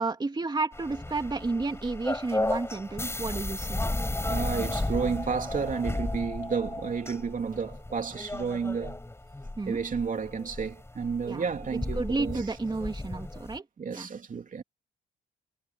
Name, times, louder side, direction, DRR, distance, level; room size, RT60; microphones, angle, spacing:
voice 1, 0.0-3.8 9.6-9.8 11.3-11.5 12.0-13.6 13.9-14.1, right 3 dB, 20° right, 2.7 m, -31 dB
sound 1, 0.7-13.6, left 2 dB, 15° left, 6.0 m, -34 dB
voice 2, 4.2-9.0 9.7-12.4 13.8-14.6, right 6 dB, 40° right, 3.1 m, -31 dB
cardioid pair, 90°, 20 cm